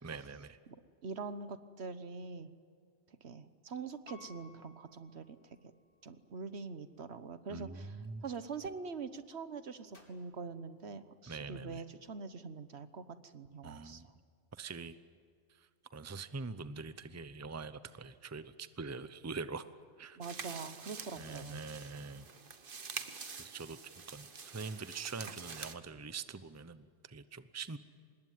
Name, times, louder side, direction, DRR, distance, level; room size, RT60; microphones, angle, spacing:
voice 1, 0.0-0.6 7.5-8.2 11.3-11.8 13.6-14.1 14.6-14.9 15.9-19.7 20.0-20.2 21.1-22.2 23.4-23.8 24.1-27.8, right 4 dB, 15° right, 13 dB, 0.7 m, -44 dB
voice 2, 1.0-2.5 3.2-5.4 6.0-14.0 20.2-21.6, right 4 dB, 70° right, 12 dB, 1.4 m, -44 dB
Piano, 4.1-6.0 6.6-6.7, left 5 dB, 85° left, 3.1 m, -59 dB
Gunshot gunfire, 8.0-8.5 9.9-11.4, left 1 dB, 50° left, 3.6 m, -67 dB
sound 1, 20.2-25.7, right 5 dB, 50° right, 1.3 m, -46 dB
25.5 x 21.0 x 9.4 m, 2.3 s
omnidirectional pair, 1.1 m